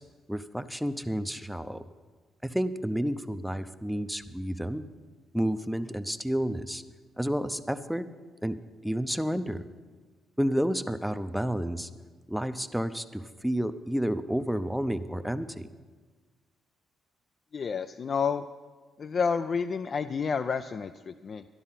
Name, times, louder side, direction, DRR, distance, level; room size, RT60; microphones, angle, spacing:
voice 1, 0.3-1.8 2.4-4.8 5.3-6.8 7.2-8.1 8.4-8.6 8.8-9.6 10.4-11.9 12.3-15.7, equal, ahead, 11 dB, 0.6 m, -30 dB
voice 2, 17.5-18.5 19.0-21.5, left 6 dB, 45° left, 9 dB, 0.4 m, -30 dB
12.5 x 11.0 x 5.7 m, 1.4 s
cardioid pair, 90°, 0 cm